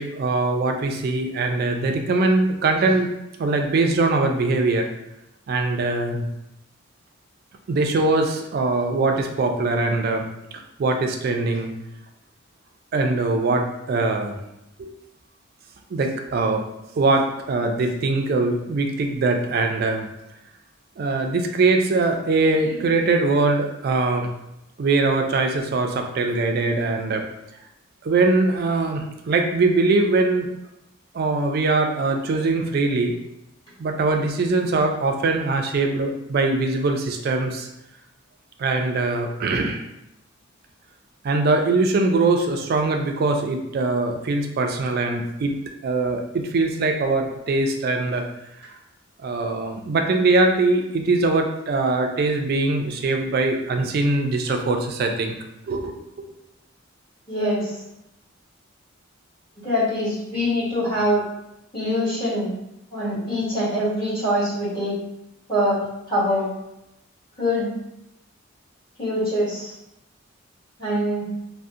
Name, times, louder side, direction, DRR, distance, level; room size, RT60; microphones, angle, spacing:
voice 1, 0.0-3.1 3.4-4.9 5.5-6.3 7.7-11.7 12.9-14.3 14.8-14.9 15.9-16.6 17.0-20.1 21.0-24.3 24.8-27.2 28.0-30.5 31.1-33.2 33.8-37.7 38.6-39.8 41.2-45.5 45.8-48.2 49.2-55.3 55.7-56.0, right 3 dB, 50° right, 4 dB, 0.3 m, -22 dB
voice 2, 57.3-57.7 59.6-61.3 61.7-62.5 62.9-64.9 65.5-65.8 66.1-66.5 67.4-67.7 69.0-69.7 70.8-71.2, equal, 20° left, -12 dB, 1.4 m, -23 dB
2.6 x 2.1 x 2.4 m, 0.86 s
head